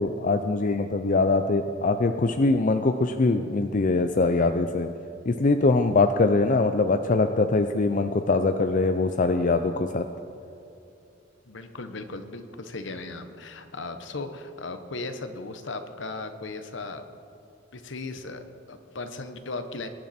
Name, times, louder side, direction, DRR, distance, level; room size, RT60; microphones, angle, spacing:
voice 1, 0.0-4.9 5.3-10.0, left 3 dB, 40° left, 8 dB, 0.5 m, -23 dB
voice 2, 11.5-17.1 17.7-19.9, left 3 dB, 70° left, 8 dB, 1.1 m, -37 dB
22.0 x 10.5 x 4.3 m, 2.6 s
head